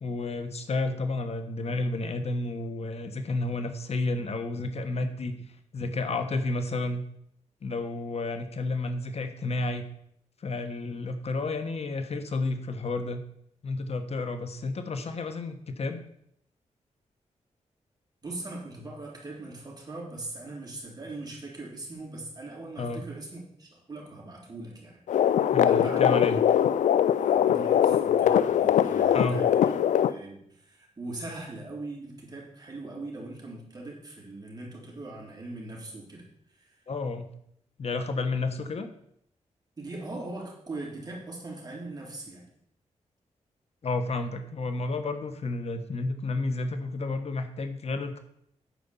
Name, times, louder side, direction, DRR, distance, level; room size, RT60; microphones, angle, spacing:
voice 1, 0.0-5.4 5.7-7.0 7.6-9.9 10.4-13.2 13.6-16.0 22.8-23.0 25.5-26.4 29.1-29.4 36.9-37.3 37.8-38.9 43.8-48.2, left 3 dB, 55° left, 8 dB, 1.2 m, -31 dB
voice 2, 18.2-25.0 25.6-26.4 27.1-29.8 30.0-36.8 39.8-42.5, right 2 dB, 30° right, -3 dB, 3.6 m, -40 dB
sound 1, 25.1-30.1, left 10 dB, 85° left, 0.4 m, -22 dB
9.2 x 5.2 x 7.1 m, 0.71 s
cardioid pair, 90°, 12 cm